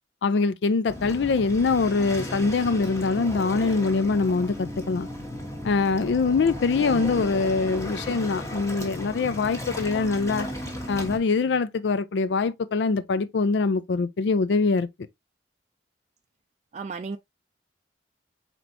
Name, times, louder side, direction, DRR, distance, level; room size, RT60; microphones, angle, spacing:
voice 1, 0.2-5.1 5.6-10.5 10.9-14.9, left 4 dB, 75° left, 0.4 m, -23 dB
Waves surf, 0.9-11.2, left 1 dB, 15° left, 1.2 m, -35 dB
voice 2, 16.7-17.2, right 4 dB, 40° right, 0.3 m, -34 dB
4.4 x 4.3 x 2.5 m
head